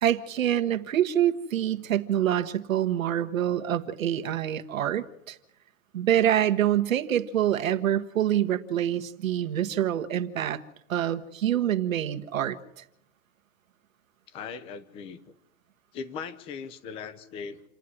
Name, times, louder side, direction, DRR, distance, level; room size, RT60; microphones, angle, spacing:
voice 1, 0.0-5.4 5.9-10.6 10.9-12.8, right 11 dB, 90° right, 8 dB, 1.5 m, -26 dB
voice 2, 14.3-15.2 15.9-17.6, left 6 dB, 15° left, 14 dB, 0.8 m, -39 dB
28.5 x 9.5 x 9.8 m, 0.78 s
hypercardioid pair, 170°, 39 cm